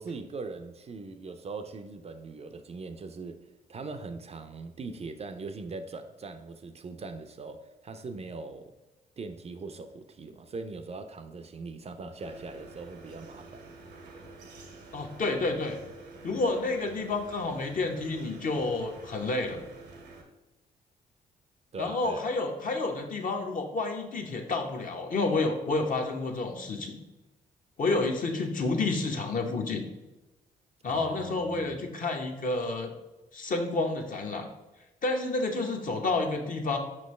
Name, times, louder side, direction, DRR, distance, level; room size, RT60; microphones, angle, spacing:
voice 1, 0.0-3.4 3.7-8.7 9.2-13.7 21.7-22.3 30.9-31.8, right 3 dB, 35° right, 8 dB, 0.5 m, -41 dB
sound 1, 12.2-20.2, right 3 dB, 75° right, 0.8 m, -49 dB
voice 2, 14.9-15.8 16.2-19.6 21.8-27.0 27.8-29.8 30.8-32.9 33.3-34.5 35.0-36.8, left 3 dB, 50° left, 3 dB, 0.8 m, -29 dB
5.1 x 3.2 x 3.1 m, 1.0 s
hypercardioid pair, 50°, 18 cm